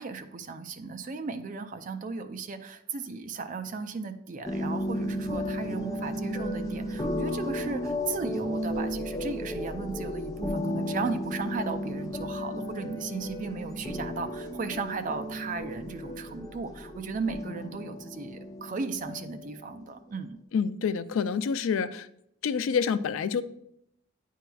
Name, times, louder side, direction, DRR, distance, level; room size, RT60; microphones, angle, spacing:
voice 1, 0.0-20.4, right 4 dB, 40° right, 8 dB, 0.4 m, -36 dB
sound 1, 4.5-19.5, equal, 15° left, 0.5 m, -34 dB
voice 2, 20.5-22.1 22.4-23.4, left 6 dB, 80° left, 14 dB, 0.3 m, -27 dB
8.9 x 4.6 x 2.3 m, 0.77 s
head